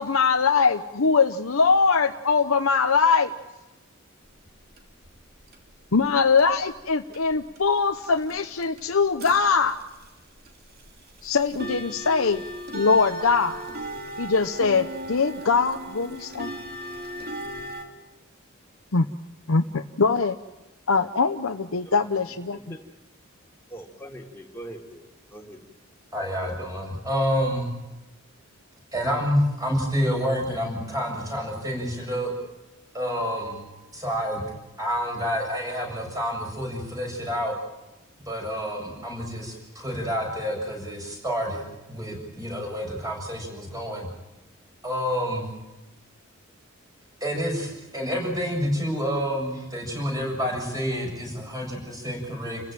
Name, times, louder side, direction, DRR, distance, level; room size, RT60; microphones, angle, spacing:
voice 1, 0.0-3.3 5.9-9.8 11.2-12.4 12.7-13.6 14.2-16.5 18.9-19.1 19.5-20.4 20.9-22.7, left 5 dB, 75° left, 5 dB, 0.9 m, -22 dB
sound 1, 4.2-6.1 6.4-6.9 7.1-17.8, right 1 dB, 45° right, 3.1 m, -37 dB
voice 2, 23.7-25.6, right 1 dB, 10° left, 0 dB, 3.2 m, -42 dB
voice 3, 26.1-27.7 28.9-32.3 32.9-33.6 33.9-34.4 34.8-37.6 38.3-41.6 41.9-44.1 44.8-45.5 47.2-52.6, equal, 15° right, 0 dB, 7.4 m, -28 dB
29.5 x 15.5 x 9.1 m, 1.0 s
head